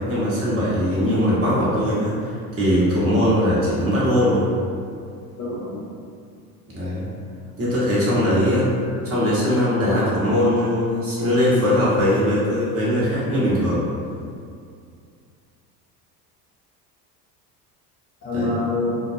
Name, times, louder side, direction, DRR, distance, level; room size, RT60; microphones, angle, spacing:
voice 1, 0.0-4.5 6.7-7.0 7.6-8.7 9.0-13.9 18.3-18.5, equal, 30° right, -9 dB, 1.0 m, -20 dB
voice 2, 1.0-1.8 5.4-5.9 18.2-19.0, left 2 dB, 25° left, -8 dB, 0.4 m, -25 dB
2.2 x 2.2 x 2.6 m, 2.3 s
hypercardioid pair, 70°, 46 cm